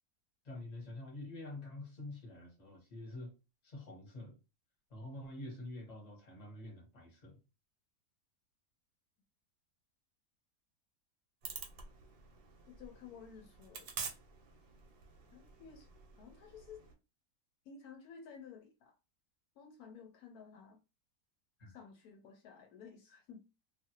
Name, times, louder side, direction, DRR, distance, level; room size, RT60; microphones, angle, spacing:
voice 1, 0.4-3.3 3.6-4.4 4.9-7.4 21.6-21.8, left 2 dB, 30° left, 1.0 m, -47 dB
sound 1, 11.4-16.9, right 5 dB, 75° right, 1.2 m, -48 dB
voice 2, 12.7-14.1 15.3-15.9 16.2-16.9 17.6-18.9 19.6-20.8 21.7-23.4, left 6 dB, 75° left, 1.0 m, -54 dB
2.6 x 2.4 x 2.8 m
omnidirectional pair, 1.6 m